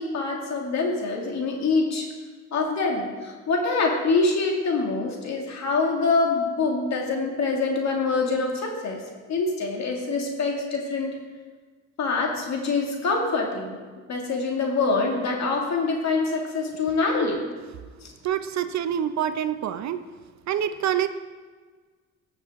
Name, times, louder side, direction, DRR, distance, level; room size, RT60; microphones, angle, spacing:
voice 1, 0.0-2.1 2.5-9.0 9.3-11.2 12.0-13.8 14.1-17.4 18.0-18.1, left 3 dB, 65° left, 0 dB, 2.3 m, -25 dB
voice 2, 18.2-20.0 20.5-21.1, right 10 dB, 65° right, 10 dB, 0.7 m, -26 dB
16.5 x 6.6 x 3.7 m, 1.5 s
cardioid pair, 90°, 30 cm